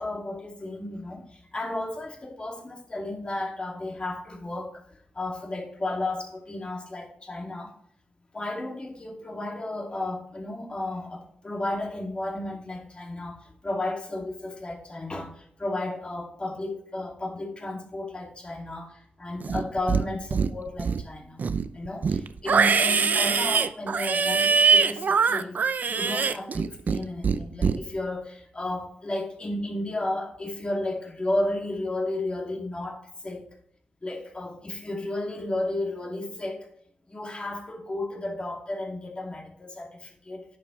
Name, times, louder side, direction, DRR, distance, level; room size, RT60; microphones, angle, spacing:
voice 1, 0.0-4.8 5.1-7.7 8.3-21.4 21.7-25.6 25.9-33.5 34.0-36.7 37.1-40.4, left 2 dB, 35° left, 2.5 m, -33 dB
Livestock farm animals working animals, 19.4-20.0 20.3-21.0 21.4-27.0 27.2-27.8, right 5 dB, 60° right, 0.6 m, -23 dB
10.5 x 7.6 x 3.2 m
cardioid pair, 60°, 3 cm